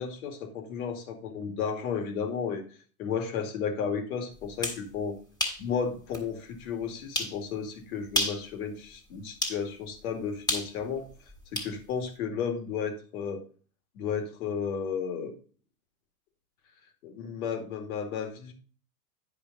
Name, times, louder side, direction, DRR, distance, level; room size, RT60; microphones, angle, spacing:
voice 1, 0.0-2.6 3.0-5.2 5.6-11.1 11.5-13.4 13.9-15.3 17.0-18.5, left 6 dB, 65° left, 4 dB, 2.3 m, -33 dB
sound 1, 4.4-4.8 5.4-5.6 6.1-6.2 7.1-7.4 8.1-8.4 9.4-9.6 10.5-11.7, left 1 dB, 10° left, 1.8 m, -30 dB
10.5 x 5.1 x 4.0 m, 0.39 s
hypercardioid pair, 120°, 46 cm